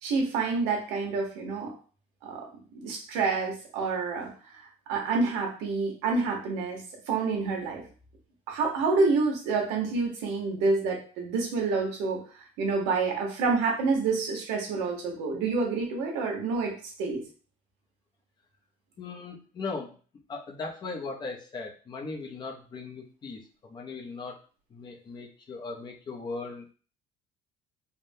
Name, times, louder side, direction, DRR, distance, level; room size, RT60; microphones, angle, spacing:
voice 1, 0.0-1.7 2.2-2.4 2.7-4.3 4.6-6.8 7.1-7.8 8.5-12.2 12.6-16.7 17.0-17.2, right 4 dB, 90° right, 0 dB, 1.1 m, -28 dB
voice 2, 19.0-20.0 20.3-24.4 24.7-26.7, left 3 dB, 25° left, 1 dB, 0.6 m, -38 dB
3.5 x 2.1 x 2.6 m, 0.39 s
cardioid pair, 150°, 17 cm